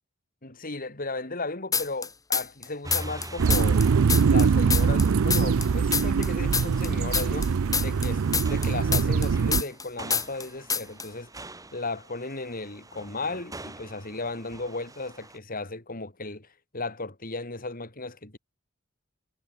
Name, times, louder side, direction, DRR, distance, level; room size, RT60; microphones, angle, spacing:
voice 1, 0.4-3.8 4.2-7.5 7.8-8.2 8.5-11.3 11.7-16.5 16.7-18.4, left 3 dB, 45° left, 3.7 m, -35 dB
sound 1, 1.7-2.6 2.9-5.7 5.9-9.8 10.1-10.4 10.7-11.1, left 5 dB, 15° left, 3.0 m, -27 dB
sound 2, 2.8-15.4, right 2 dB, 15° right, 7.2 m, -45 dB
sound 3, 3.4-9.6, right 5 dB, 85° right, 0.5 m, -23 dB
head